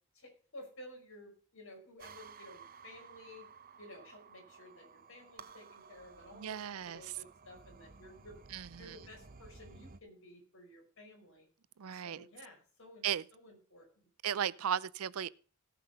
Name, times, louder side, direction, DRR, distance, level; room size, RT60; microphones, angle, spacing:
voice 1, 0.1-3.5 3.8-8.4 8.8-11.5 11.9-14.1 14.6-14.7, left 1 dB, 65° left, 5.4 m, -54 dB
sound 1, 2.0-10.0, right 5 dB, 40° right, 0.8 m, -55 dB
voice 2, 6.3-7.1 8.5-9.0 11.8-12.3 13.0-13.2 14.2-15.3, right 9 dB, 75° right, 0.5 m, -36 dB
17.5 x 5.9 x 5.4 m
head